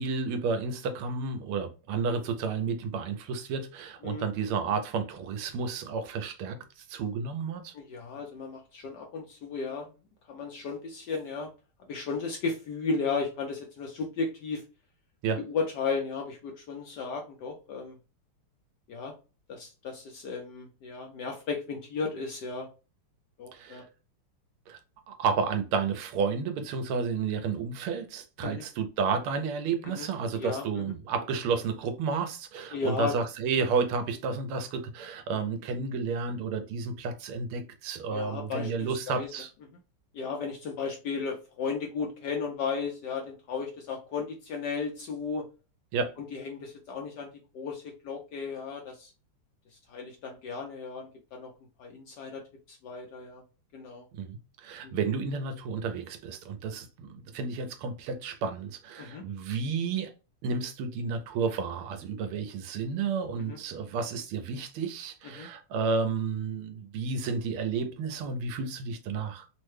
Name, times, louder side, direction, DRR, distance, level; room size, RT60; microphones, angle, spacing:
voice 1, 0.0-6.6 6.9-7.7 15.2-15.4 23.5-23.9 24.7-24.8 25.1-39.5 45.9-46.1 54.2-60.1 60.4-69.5, right 5 dB, 85° right, 1.5 m, -31 dB
voice 2, 7.7-9.9 10.3-11.5 11.9-14.6 15.4-18.0 18.9-19.1 19.5-22.7 23.4-23.8 28.4-28.6 29.8-30.1 30.3-30.9 32.7-33.1 38.1-39.3 40.1-45.4 46.2-49.1 49.7-51.5 51.8-52.4 52.7-53.4 53.7-54.0 54.8-55.0 59.0-59.2 63.5-63.6 65.4-65.5, left 4 dB, 70° left, 1.0 m, -35 dB
3.7 x 2.1 x 3.1 m
omnidirectional pair, 2.4 m